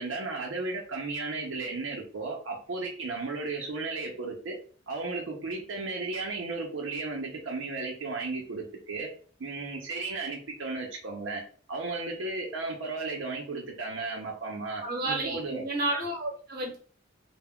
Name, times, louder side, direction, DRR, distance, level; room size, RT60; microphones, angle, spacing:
voice 1, 0.0-4.6 4.9-9.1 9.4-11.4 11.7-15.6, right 3 dB, 80° right, -1 dB, 0.5 m, -34 dB
voice 2, 14.8-16.8, right 2 dB, 50° right, 0 dB, 0.8 m, -31 dB
2.2 x 2.1 x 3.5 m, 0.43 s
head